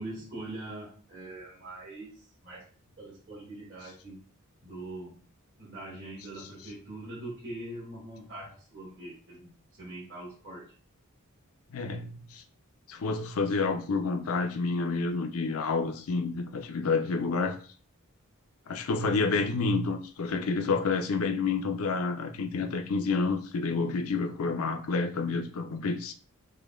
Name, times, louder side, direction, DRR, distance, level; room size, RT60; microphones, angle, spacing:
voice 1, 0.0-2.7 3.0-4.2 4.6-5.2 5.6-9.5 9.8-10.7, right 2 dB, 55° right, 1.6 m, -42 dB
voice 2, 11.7-12.4 12.9-17.6 18.7-26.1, left 4 dB, 70° left, 0.5 m, -29 dB
4.9 x 2.2 x 2.3 m
head